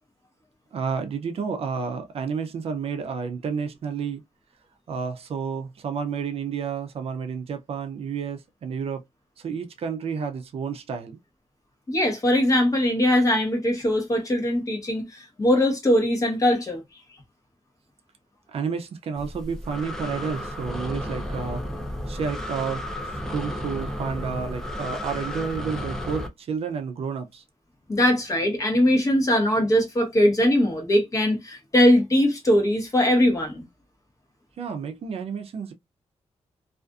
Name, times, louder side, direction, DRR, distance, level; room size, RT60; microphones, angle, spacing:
voice 1, 0.7-4.2 4.9-9.0 9.4-11.2 18.5-21.6 22.1-27.4 34.6-35.7, right 6 dB, 55° right, 0.4 m, -30 dB
voice 2, 11.9-16.8 27.9-33.6, left 1 dB, 30° left, 1.0 m, -21 dB
Breathing, 19.2-26.3, left 1 dB, 5° left, 0.5 m, -33 dB
2.5 x 2.4 x 2.2 m
wide cardioid pair, 170°, 12 cm